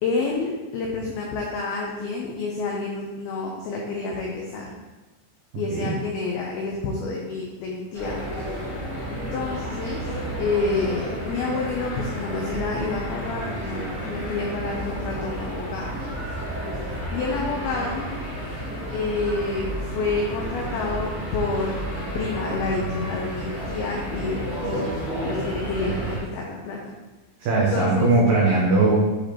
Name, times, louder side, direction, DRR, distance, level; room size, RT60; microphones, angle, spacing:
voice 1, 0.0-4.7 5.6-8.2 9.1-10.0 10.4-16.2 17.1-18.1 18.9-24.9 25.2-26.8 27.6-28.1, left 3 dB, 85° left, -1 dB, 2.1 m, -29 dB
sound 1, 7.9-26.2, right 1 dB, 40° left, 1.3 m, -31 dB
voice 2, 27.4-29.0, right 3 dB, 85° right, -4 dB, 2.0 m, -19 dB
8.1 x 5.0 x 2.9 m, 1.1 s
omnidirectional pair, 5.3 m